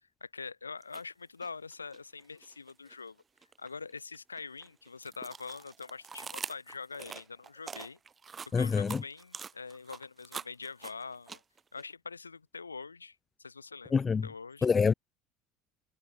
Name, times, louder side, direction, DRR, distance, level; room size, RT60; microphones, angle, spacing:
voice 1, 0.2-3.2 3.6-8.0 8.5-11.4 11.7-14.7, left 4 dB, 90° left, 7.9 m, -44 dB
sound 1, 0.8-1.0 1.4-3.0 3.4-11.8, right 5 dB, 25° right, 7.4 m, -44 dB
voice 2, 8.5-9.0 13.9-14.3 14.6-14.9, left 5 dB, 25° left, 2.5 m, -26 dB
figure-of-eight pair, 70°, 0 cm